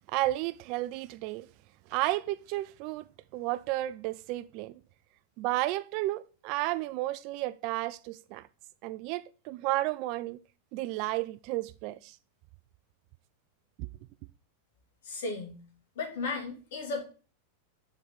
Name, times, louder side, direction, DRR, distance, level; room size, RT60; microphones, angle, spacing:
voice 1, 0.1-1.5 1.9-3.0 3.3-4.7 5.4-8.5 8.8-10.4 10.7-12.1 13.8-13.9, right 17 dB, 45° right, 0.3 m, -32 dB
voice 2, 15.0-15.6 16.0-17.0, left 3 dB, 55° left, 2.1 m, -35 dB
6.6 x 3.9 x 5.5 m
figure-of-eight pair, 90°, 0 cm